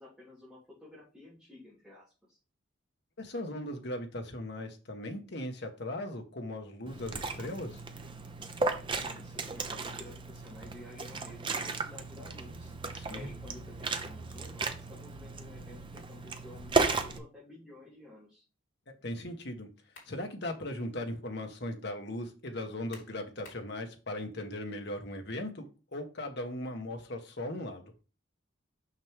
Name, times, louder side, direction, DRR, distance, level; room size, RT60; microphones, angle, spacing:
voice 1, 0.0-2.4 9.0-12.7 13.1-18.4, left 2 dB, 5° right, 3.2 m, -52 dB
voice 2, 3.2-7.8 12.9-13.2 19.0-19.7 20.1-27.9, left 1 dB, 60° left, 1.4 m, -38 dB
Liquid, 6.9-17.2, right 3 dB, 25° right, 0.7 m, -35 dB
sound 1, 16.9-17.2 19.6-20.2 20.7-20.8 22.9-23.7, left 4 dB, 75° left, 3.1 m, -53 dB
6.4 x 6.2 x 3.5 m
head